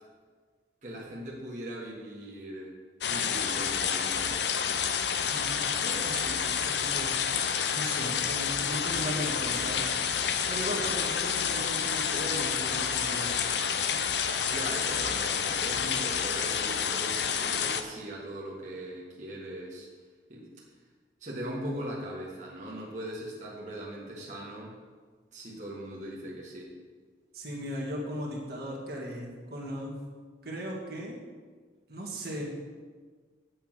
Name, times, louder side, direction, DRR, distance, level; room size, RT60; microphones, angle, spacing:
voice 1, 0.8-2.7 3.1-4.5 10.7-11.0 14.4-19.9 20.3-20.5 21.2-24.7 25.3-26.7, right 1 dB, 40° right, -5 dB, 1.7 m, -40 dB
sound 1, 3.0-17.8, left 7 dB, 70° left, 0.6 m, -29 dB
voice 2, 5.3-7.2 7.7-9.8 10.5-13.5 15.8-15.9 27.3-29.9 30.4-31.2 31.9-32.4, equal, 55° right, -3 dB, 1.8 m, -37 dB
8.6 x 5.8 x 7.5 m, 1.5 s
head